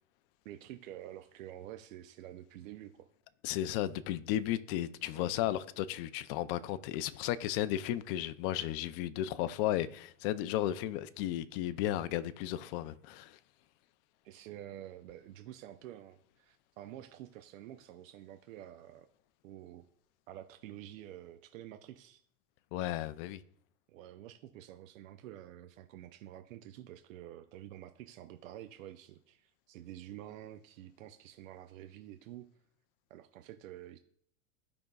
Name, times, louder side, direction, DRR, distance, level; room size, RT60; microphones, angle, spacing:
voice 1, 0.4-3.1 5.1-5.5 14.2-19.1 19.4-19.8 20.3-22.2 23.9-32.5 33.1-34.0, right 12 dB, 80° right, 0.6 m, -49 dB
voice 2, 3.4-13.4 22.7-23.4, left 13 dB, 45° left, 0.5 m, -34 dB
13.5 x 5.2 x 2.3 m
supercardioid pair, 140°, 39 cm